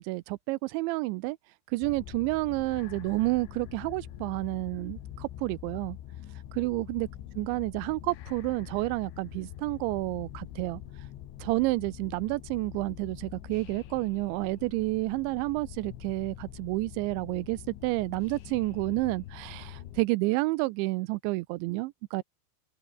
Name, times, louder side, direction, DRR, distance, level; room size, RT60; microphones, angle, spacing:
voice 1, 0.0-1.4 1.7-6.0 6.5-7.1 7.4-10.8 11.4-22.2, right 22 dB, 90° right, 2.9 m, -30 dB
sound 1, 1.8-20.1, left 12 dB, 85° left, 4.4 m, -44 dB
open air
omnidirectional pair, 5.2 m